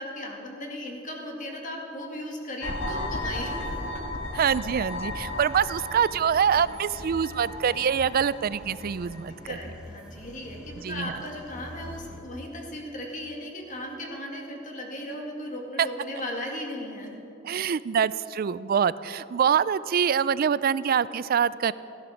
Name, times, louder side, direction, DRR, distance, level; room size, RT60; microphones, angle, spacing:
voice 1, 0.0-3.7 9.4-17.1, left 1 dB, 40° left, 0 dB, 2.1 m, -36 dB
sound 1, 2.6-9.3, left 1 dB, 60° left, 1.7 m, -35 dB
sound 2, 3.1-12.2, left 1 dB, 5° right, 1.1 m, -46 dB
voice 2, 4.3-9.6 10.8-11.1 15.8-15.9 17.4-21.7, right 7 dB, 45° right, 18 dB, 0.3 m, -25 dB
15.5 x 11.0 x 6.3 m, 2.9 s
head